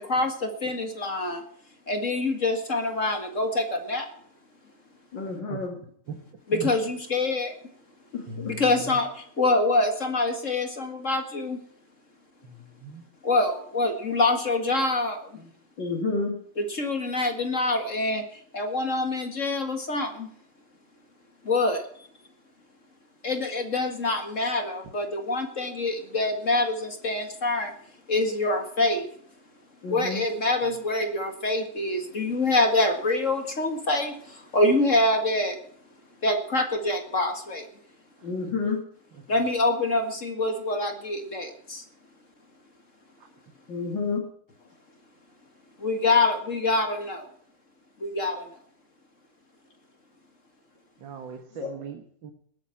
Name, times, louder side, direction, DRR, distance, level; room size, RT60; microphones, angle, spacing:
voice 1, 0.0-1.4 1.9-4.1 6.5-7.5 8.5-11.6 13.2-15.2 16.6-20.3 21.4-21.9 23.2-27.7 28.1-29.1 29.9-35.6 36.2-37.7 39.3-41.8 45.8-47.3 48.0-48.5, left 2 dB, 45° left, 5 dB, 2.2 m, -25 dB
voice 2, 5.1-5.8 8.1-8.5 15.8-16.4 29.8-30.2 38.2-38.8 43.7-44.3 51.6-51.8, left 4 dB, 80° left, 0 dB, 3.3 m, -30 dB
voice 3, 8.3-8.6 12.8-13.0 51.0-52.3, right 5 dB, 80° right, 5 dB, 2.2 m, -38 dB
19.5 x 9.2 x 5.8 m, 0.63 s
omnidirectional pair, 2.0 m